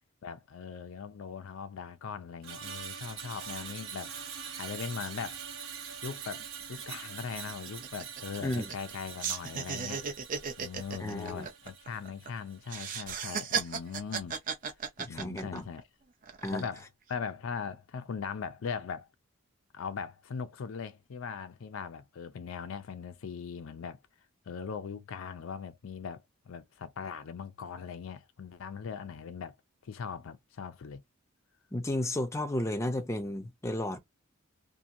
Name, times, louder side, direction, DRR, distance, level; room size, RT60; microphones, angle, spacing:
voice 1, 0.2-4.1 4.6-5.4 6.0-10.1 10.6-14.4 15.1-15.8 16.5-16.8 17.1-19.1 19.7-24.0 24.5-29.6 29.8-31.0, left 6 dB, 75° left, 0.4 m, -40 dB
Screech, 2.4-12.8 13.1-13.4, right 7 dB, 75° right, 0.8 m, -44 dB
sound 1, 6.4-6.5 6.8-7.0 7.3-8.9 9.2-12.3 12.7-15.8 16.2-16.8, right 6 dB, 40° right, 0.5 m, -35 dB
voice 2, 11.0-11.5 15.0-15.7 16.4-16.6 31.7-34.0, left 1 dB, 15° left, 0.5 m, -33 dB
2.8 x 2.5 x 2.5 m
head